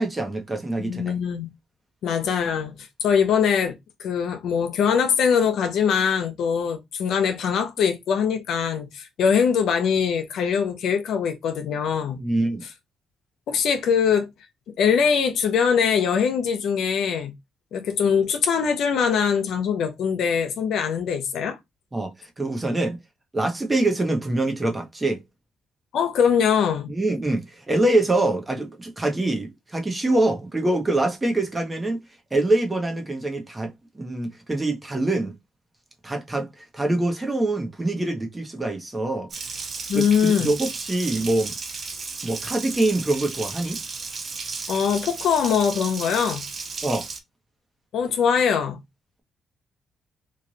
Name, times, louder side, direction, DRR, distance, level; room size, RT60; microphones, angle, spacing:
voice 1, 0.0-1.2 12.2-12.6 21.9-23.0 23.3-25.2 26.9-32.0 32.3-35.3 36.0-39.3 39.9-41.5 42.2-43.8 46.8-47.1, right 2 dB, 20° right, 1.0 m, -24 dB
voice 2, 0.8-1.5 2.0-3.7 4.0-12.2 13.5-14.3 14.8-17.3 17.7-21.6 25.9-26.9 39.9-40.5 44.7-46.4 47.9-48.8, left 7 dB, 75° left, 0.7 m, -22 dB
Water tap faucet, 39.3-47.2, right 4 dB, 45° right, 0.8 m, -34 dB
3.2 x 2.5 x 3.9 m
cardioid pair, 90°, 0 cm